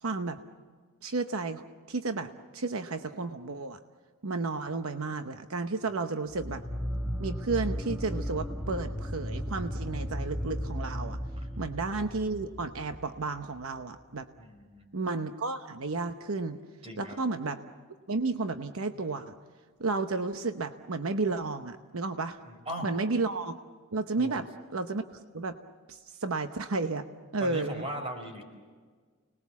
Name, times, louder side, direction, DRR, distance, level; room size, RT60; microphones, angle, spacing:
voice 1, 0.0-0.4 1.0-1.6 1.9-3.8 4.2-6.6 7.2-11.2 11.6-14.3 14.9-16.6 17.0-17.6 18.1-19.3 19.8-22.4 22.8-23.5 23.9-25.5 25.9-27.0 27.3-27.8, right 3 dB, 80° right, 8 dB, 0.9 m, -32 dB
sound 1, 6.3-13.6, equal, ahead, 1.2 m, -35 dB
voice 2, 14.4-14.9 16.8-17.2 22.5-22.9 24.2-24.4 27.4-28.4, equal, 30° right, 4 dB, 4.8 m, -39 dB
30.0 x 20.5 x 7.2 m, 1.5 s
head